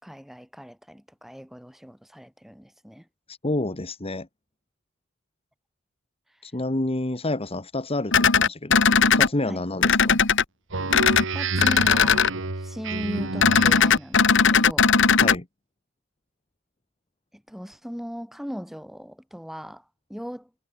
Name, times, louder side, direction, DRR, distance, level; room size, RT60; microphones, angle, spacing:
voice 1, 0.0-3.1 9.5-9.7 11.3-14.9 17.3-19.8 20.1-20.5, equal, ahead, 5.2 m, -38 dB
voice 2, 3.3-4.3 6.4-8.8 9.2-10.2 15.2-15.5, left 2 dB, 30° left, 1.5 m, -29 dB
sound 1, 8.1-9.3 9.8-10.4 10.9-11.2 11.6-12.3 13.4-15.4, left 6 dB, 65° left, 1.8 m, -18 dB
Speech synthesizer, 10.7-14.0, right 3 dB, 65° right, 1.9 m, -30 dB
head